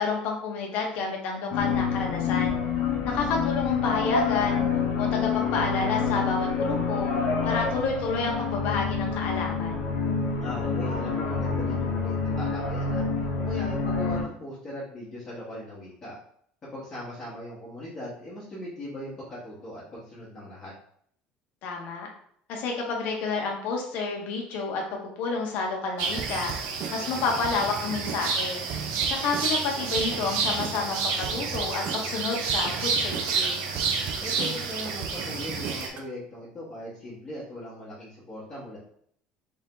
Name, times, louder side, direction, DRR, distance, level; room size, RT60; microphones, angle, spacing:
voice 1, 0.0-2.6 3.0-4.6 5.0-7.1 7.4-9.9 21.6-22.1 22.5-26.5 26.9-28.6 29.1-33.6, left 4 dB, 55° left, 0 dB, 1.0 m, -30 dB
sound 1, 1.5-14.2, left 5 dB, 80° left, 0.9 m, -27 dB
voice 2, 3.0-3.4 10.4-13.0 13.4-16.2 16.6-20.7 27.0-27.4 34.2-38.8, left 1 dB, 25° left, -9 dB, 1.2 m, -39 dB
sound 2, 26.0-35.9, right 4 dB, 80° right, 0.7 m, -30 dB
sound 3, 26.2-36.1, right 7 dB, 45° right, 0.3 m, -38 dB
3.5 x 2.7 x 3.6 m, 0.64 s
cardioid pair, 165°, 3 cm